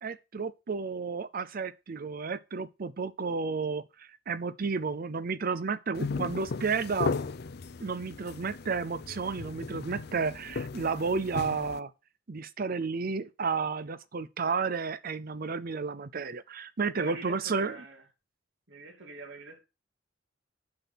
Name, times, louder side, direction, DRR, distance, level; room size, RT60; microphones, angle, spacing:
voice 1, 0.0-7.1 7.8-11.9 12.3-17.8, right 5 dB, 50° right, 0.6 m, -32 dB
sound 1, 5.9-11.8, left 4 dB, 60° left, 0.5 m, -36 dB
voice 2, 16.9-18.0 18.7-19.6, right 2 dB, 80° right, 2.9 m, -44 dB
8.7 x 6.0 x 5.8 m
head